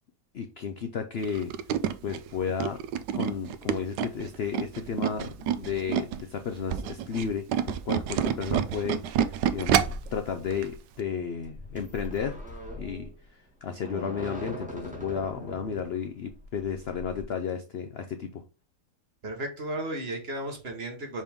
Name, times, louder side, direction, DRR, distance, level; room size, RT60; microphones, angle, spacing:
voice 1, 0.3-1.5 2.0-2.8 3.1-12.4 12.8-18.4, left 6 dB, 75° left, 7 dB, 0.5 m, -33 dB
Tools, 1.2-6.2 6.6-10.1 10.5-10.7 11.0-11.1, right 9 dB, 90° right, 1.2 m, -28 dB
sound 1, 9.6-17.2, equal, 5° right, 1.6 m, -41 dB
voice 2, 19.2-21.2, right 1 dB, 40° right, 4 dB, 1.3 m, -34 dB
5.3 x 5.2 x 3.5 m, 0.33 s
omnidirectional pair, 1.8 m